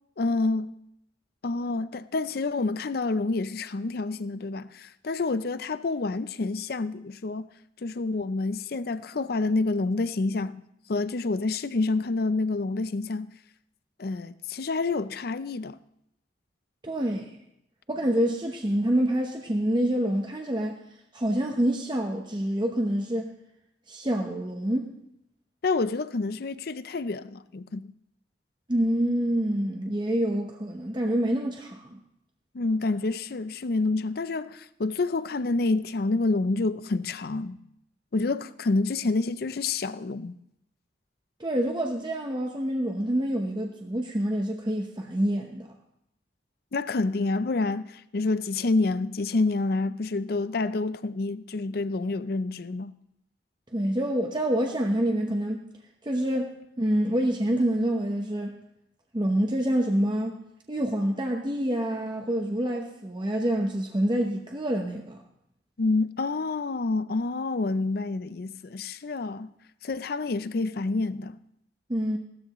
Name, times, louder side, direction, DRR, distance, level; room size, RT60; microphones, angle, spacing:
voice 1, 0.2-0.7 1.4-7.5 7.8-10.6 10.9-13.3 14.0-15.8 25.6-27.9 32.5-37.6 38.1-40.4 46.7-52.9 65.8-69.5 69.8-71.4, left 3 dB, 55° left, 0.5 m, -28 dB
voice 2, 16.8-17.4 17.9-20.8 21.1-23.3 23.9-24.9 28.7-32.0 41.4-45.7 53.7-55.7 56.0-58.6 59.1-65.2 71.9-72.2, right 1 dB, 25° right, 0.9 m, -27 dB
16.0 x 13.0 x 3.0 m
head